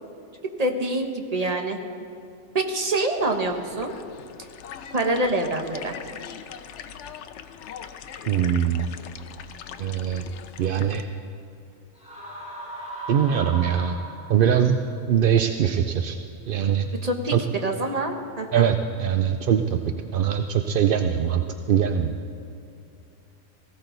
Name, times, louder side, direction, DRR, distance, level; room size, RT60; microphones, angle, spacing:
voice 1, 0.6-1.8 2.5-3.9 4.9-6.0 17.0-18.7, right 2 dB, 30° right, 3 dB, 1.2 m, -26 dB
sound 1, 3.1-11.0, left 8 dB, 65° left, 0.9 m, -41 dB
voice 2, 8.3-8.9 9.8-10.2 10.6-11.0 13.1-14.0 14.3-14.8 15.1-16.2 16.5-16.9 17.3-17.4 18.5-19.8 20.1-21.4 21.7-22.2, right 9 dB, 60° right, 6 dB, 0.6 m, -22 dB
sound 2, 12.0-14.6, right 1 dB, 5° right, 3.7 m, -37 dB
18.5 x 16.0 x 3.9 m, 2.6 s
omnidirectional pair, 1.4 m